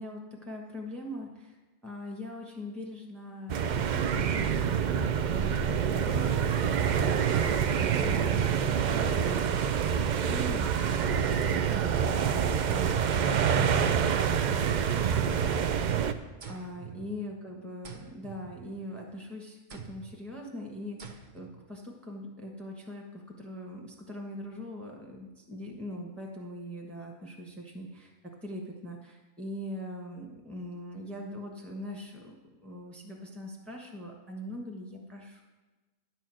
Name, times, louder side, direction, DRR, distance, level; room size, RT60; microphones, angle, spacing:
voice 1, 0.0-1.6 1.8-3.6 3.9-16.2 16.5-28.1 28.4-35.4, left 1 dB, ahead, 0 dB, 1.1 m, -42 dB
sound 1, 3.5-16.1, right 7 dB, 80° right, 0.4 m, -27 dB
sound 2, 16.4-17.5 17.8-19.1 19.7-20.2 21.0-21.6, right 5 dB, 45° right, 0.8 m, -47 dB
10.5 x 4.5 x 7.6 m, 1.2 s
omnidirectional pair, 1.3 m